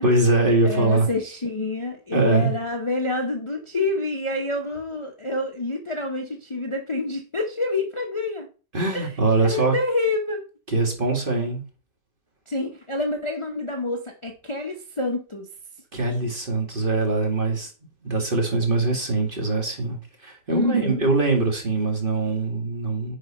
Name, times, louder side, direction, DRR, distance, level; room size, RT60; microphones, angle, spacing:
voice 1, 0.0-1.1 2.1-2.5 8.7-9.7 10.7-11.6 15.9-17.7 18.0-23.2, right 3 dB, 35° right, 2.4 m, -22 dB
voice 2, 0.6-8.5 8.9-9.1 9.4-10.4 12.5-15.5 20.5-21.0, left 2 dB, 25° left, 0.9 m, -27 dB
9.8 x 4.9 x 4.3 m
omnidirectional pair, 1.5 m